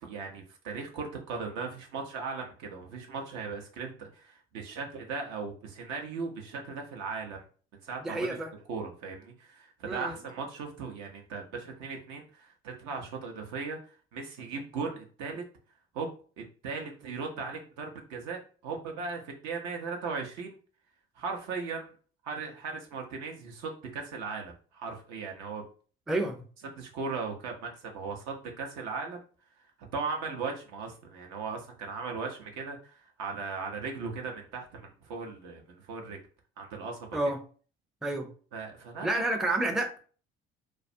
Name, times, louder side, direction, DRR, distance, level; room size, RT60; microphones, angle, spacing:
voice 1, 0.0-7.4 7.8-8.4 8.7-13.8 14.1-15.4 15.9-20.5 21.2-21.9 22.2-25.6 26.8-29.2 29.9-36.2 36.6-37.1 38.5-39.2, right 4 dB, 65° right, 0.6 m, -38 dB
voice 2, 8.0-8.5 9.8-10.1 26.1-26.4 37.1-37.4 38.0-38.3 39.0-40.0, right 2 dB, ahead, 0.4 m, -29 dB
2.3 x 2.1 x 2.6 m
hypercardioid pair, 50°, 31 cm